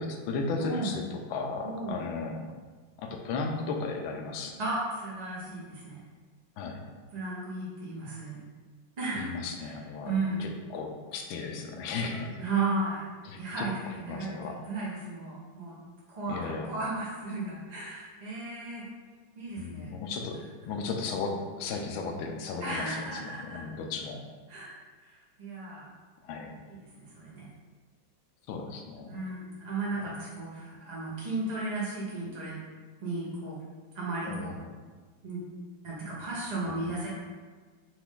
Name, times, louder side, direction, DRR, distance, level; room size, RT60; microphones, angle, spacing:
voice 1, 0.0-2.5 3.0-4.5 5.4-5.5 6.6-6.8 9.1-10.1 10.4-12.4 13.2-14.6 16.3-16.7 19.6-24.2 26.2-26.6 28.5-29.2 34.2-34.8 36.7-36.9, left 4 dB, 80° left, 3 dB, 1.4 m, -35 dB
voice 2, 0.6-0.9 1.6-2.0 4.6-6.0 7.1-8.4 9.0-9.3 9.6-9.7 10.0-10.5 12.4-13.0 13.3-15.8 16.2-18.8 19.4-19.9 22.6-23.6 24.5-24.7 25.0-25.9 26.7-27.5 29.1-32.5 33.0-33.5 33.9-34.5 35.2-35.4 35.8-37.1, right 3 dB, 45° right, -6 dB, 0.5 m, -34 dB
5.8 x 2.5 x 3.6 m, 1.5 s
omnidirectional pair, 2.2 m